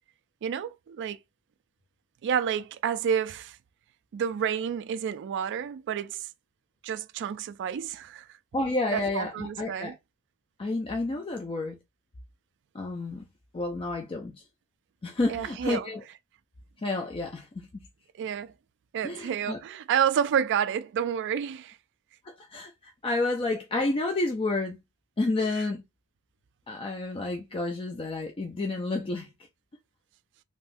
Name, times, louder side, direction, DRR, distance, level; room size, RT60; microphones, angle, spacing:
voice 1, 0.4-1.2 2.2-3.6 4.1-6.3 6.8-8.3 8.9-10.0 15.3-16.1 18.2-18.5 18.9-21.8 25.4-25.7, right 8 dB, 55° right, 0.3 m, -30 dB
voice 2, 8.5-9.9 10.6-11.8 12.7-13.3 13.5-14.4 15.0-16.0 16.8-17.8 19.0-19.6 22.2-24.8 25.2-25.8 26.7-29.3, left 2 dB, 25° left, 0.4 m, -30 dB
3.5 x 2.7 x 2.5 m
head